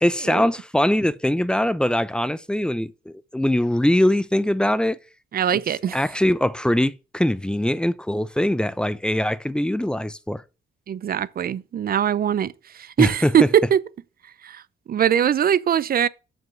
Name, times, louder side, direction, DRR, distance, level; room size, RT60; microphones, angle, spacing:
voice 1, 0.0-5.0 5.5-5.6 5.9-10.4 13.0-13.5, left 1 dB, 5° left, 0.7 m, -22 dB
voice 2, 5.3-6.0 10.9-13.8 14.4-14.6 14.9-16.1, right 9 dB, 50° right, 0.6 m, -21 dB
6.8 x 6.4 x 7.0 m
cardioid pair, 90°, 20 cm